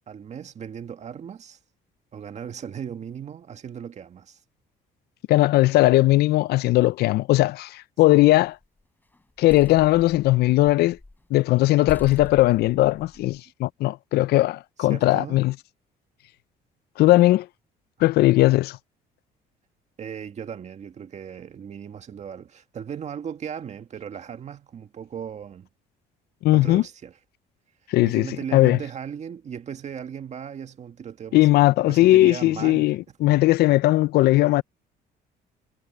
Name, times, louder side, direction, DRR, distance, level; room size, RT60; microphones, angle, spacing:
voice 1, 0.1-1.6 2.1-4.4 14.8-15.4 20.0-25.7 26.5-27.1 28.0-32.9, right 8 dB, 45° right, 1.8 m, -37 dB
voice 2, 5.3-8.6 9.4-11.0 11.3-15.5 17.0-17.5 18.0-18.8 26.4-26.8 27.9-28.3 28.5-28.8 31.3-34.6, left 17 dB, 75° left, 0.5 m, -18 dB
sound 1, 8.1-8.6 9.1-11.2 11.5-11.6 11.9-13.4, left 2 dB, 10° left, 4.3 m, -42 dB
cardioid pair, 110°, 17 cm